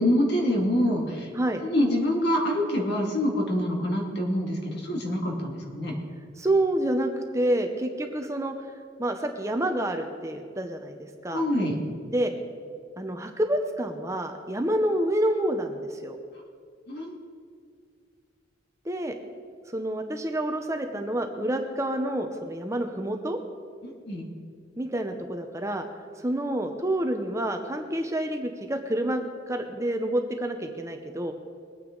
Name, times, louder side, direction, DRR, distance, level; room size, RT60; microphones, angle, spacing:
voice 1, 0.0-1.3 1.6-5.9 11.3-11.8 16.9-17.1 23.8-24.3, left 1 dB, 55° left, 0 dB, 2.3 m, -26 dB
voice 2, 6.4-8.5 9.0-11.0 11.2-11.4 12.1-12.3 13.0-16.2 18.9-19.1 19.7-23.4 24.8-25.8 26.2-31.3, right 1 dB, 15° right, 5 dB, 0.7 m, -28 dB
22.0 x 9.1 x 3.9 m, 2.1 s
head